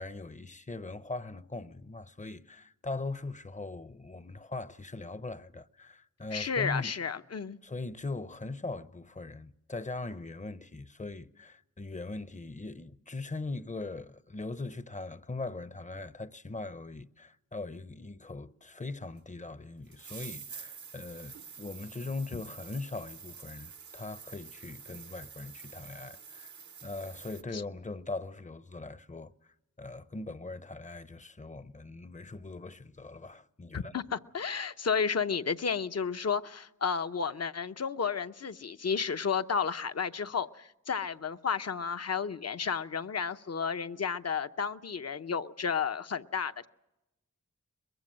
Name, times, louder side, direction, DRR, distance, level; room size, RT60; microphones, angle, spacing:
voice 1, 0.0-6.9 7.6-29.3 29.8-33.9, left 3 dB, 25° left, 0.7 m, -40 dB
voice 2, 6.3-7.6 27.5-27.6 33.7-46.7, left 6 dB, 55° left, 0.8 m, -32 dB
sound 1, 19.2-19.3 19.9-27.4, right 6 dB, 65° right, 0.9 m, -48 dB
23.0 x 21.5 x 7.5 m
wide cardioid pair, 75°, 30 cm